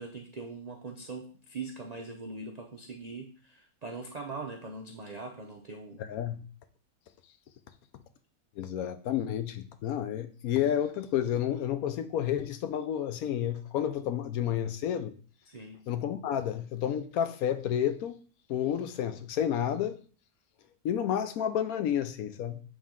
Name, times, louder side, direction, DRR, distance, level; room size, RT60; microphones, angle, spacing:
voice 1, 0.0-6.0 15.5-15.8, right 3 dB, 75° right, 0.3 m, -41 dB
voice 2, 6.0-6.5 8.6-15.1 15.9-18.2 18.5-20.0 20.8-22.6, left 10 dB, 75° left, 1.0 m, -30 dB
7.6 x 3.5 x 3.7 m
omnidirectional pair, 1.6 m